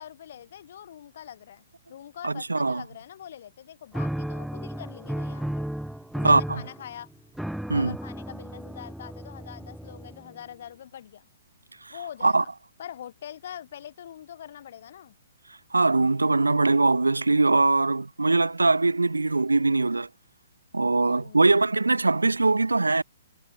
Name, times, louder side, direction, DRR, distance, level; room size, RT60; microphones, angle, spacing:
voice 1, 0.0-5.7 6.2-7.1 7.7-11.3 11.9-12.5 12.8-15.1 21.0-21.6, left 10 dB, 55° left, 4.2 m, -43 dB
voice 2, 2.2-2.8 6.2-6.6 7.7-8.0 11.8-11.9 12.2-12.4 15.7-20.1 20.7-23.0, right 3 dB, 90° right, 1.9 m, -22 dB
sound 1, 3.9-10.4, right 1 dB, ahead, 0.7 m, -34 dB
figure-of-eight pair, 130°, 0 cm